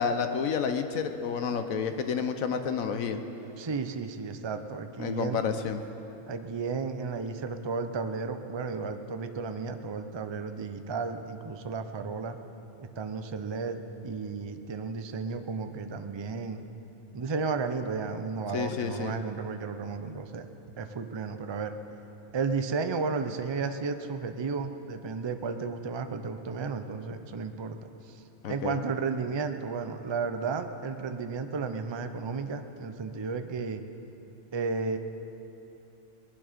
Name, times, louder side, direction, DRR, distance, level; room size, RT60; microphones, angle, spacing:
voice 1, 0.0-3.2 5.0-5.8 18.5-19.2 28.4-28.8, left 6 dB, 70° left, 8 dB, 1.2 m, -30 dB
voice 2, 3.6-5.4 6.3-12.4 12.8-16.6 17.1-20.5 20.8-21.8 22.3-33.8 34.5-35.0, right 4 dB, 40° right, 7 dB, 0.3 m, -33 dB
21.0 x 11.5 x 5.1 m, 3.0 s
omnidirectional pair, 1.5 m